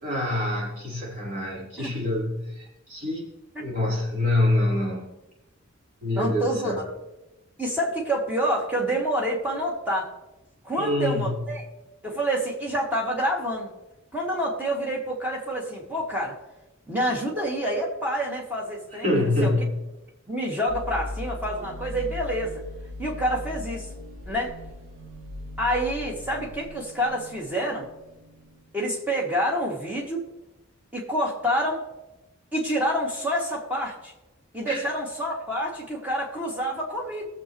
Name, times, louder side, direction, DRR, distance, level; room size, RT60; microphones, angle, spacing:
voice 1, 0.0-3.3 3.6-5.1 6.0-6.9 10.8-11.4 19.0-19.7 34.7-34.8, left 1 dB, 40° right, -6 dB, 4.6 m, -26 dB
voice 2, 6.1-6.9 7.6-10.1 10.6-11.6 12.0-13.7 14.1-16.4 16.9-19.5 20.3-22.6 23.0-23.9 24.3-24.5 25.6-27.9 28.7-30.2 30.9-31.8 32.5-34.1 34.5-37.3, equal, 5° right, -3 dB, 2.4 m, -27 dB
sound 1, 20.7-28.6, left 2 dB, 60° right, 4.2 m, -39 dB
21.0 x 7.6 x 3.2 m, 0.98 s
head